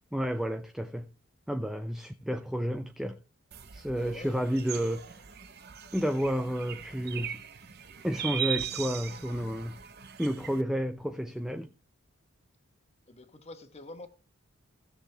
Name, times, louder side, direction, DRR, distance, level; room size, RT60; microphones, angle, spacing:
voice 1, 0.1-1.1 1.5-3.2 3.7-5.3 5.9-7.4 8.0-9.8 10.2-11.7, equal, ahead, 0.4 m, -31 dB
sound 1, 3.5-10.6, right 9 dB, 50° right, 0.9 m, -39 dB
voice 2, 3.9-4.9 13.1-14.1, left 2 dB, 30° left, 1.2 m, -47 dB
16.5 x 6.6 x 3.4 m
head